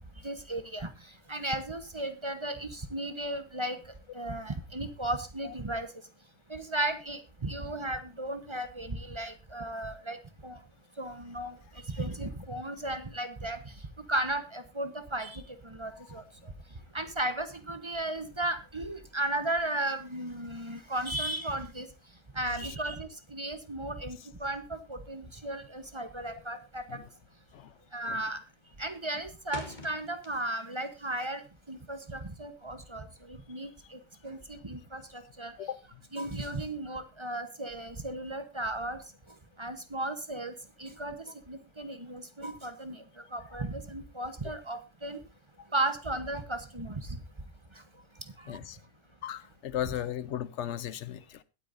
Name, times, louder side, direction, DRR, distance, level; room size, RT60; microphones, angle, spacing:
voice 1, 0.2-0.9 1.3-3.8 4.1-5.9 6.5-10.2 10.4-10.6 11.0-11.6 11.9-13.6 14.1-16.5 16.9-21.9 22.3-27.0 27.9-28.4 28.8-31.4 31.7-35.5 36.1-39.0 39.6-40.5 40.8-43.0 43.3-45.2 45.7-47.2 48.4-48.5, right 1 dB, 25° right, 1.0 m, -35 dB
sound 1, 26.4-26.7 27.0-27.3 27.7-28.1 28.4-30.8 31.1-32.6, left 2 dB, 35° left, 1.8 m, -46 dB
voice 2, 48.5-48.8 49.2-51.4, left 11 dB, 65° left, 1.0 m, -36 dB
21.5 x 8.5 x 2.6 m
omnidirectional pair, 1.4 m